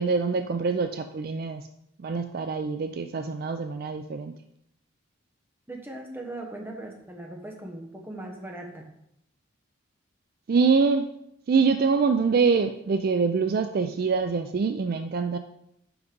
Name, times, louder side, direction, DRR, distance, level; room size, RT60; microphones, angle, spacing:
voice 1, 0.0-1.7 2.0-4.3 10.5-11.1 11.5-15.4, right 5 dB, 50° right, 8 dB, 0.4 m, -24 dB
voice 2, 5.7-8.9, right 1 dB, 10° right, 0 dB, 1.1 m, -39 dB
5.9 x 5.2 x 5.2 m, 0.76 s
head